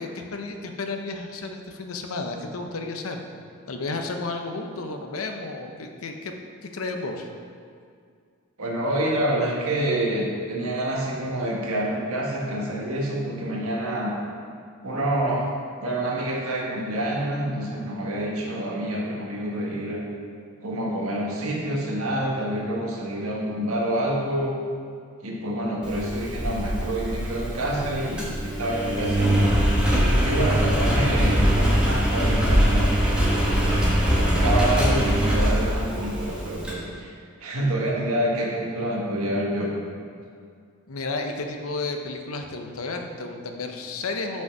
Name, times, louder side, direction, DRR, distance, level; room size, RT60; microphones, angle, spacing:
voice 1, 0.0-3.2 3.7-6.3 6.6-7.3 40.9-44.4, left 3 dB, 80° left, 4 dB, 0.7 m, -32 dB
voice 2, 8.6-14.2 14.8-15.4 15.8-20.0 20.6-24.5 25.2-29.5 30.1-33.0 33.5-37.1 37.4-39.7, right 1 dB, 90° right, -2 dB, 1.4 m, -27 dB
Engine, 25.8-36.7, equal, 5° right, 1.3 m, -22 dB
5.7 x 5.4 x 5.9 m, 2.2 s
head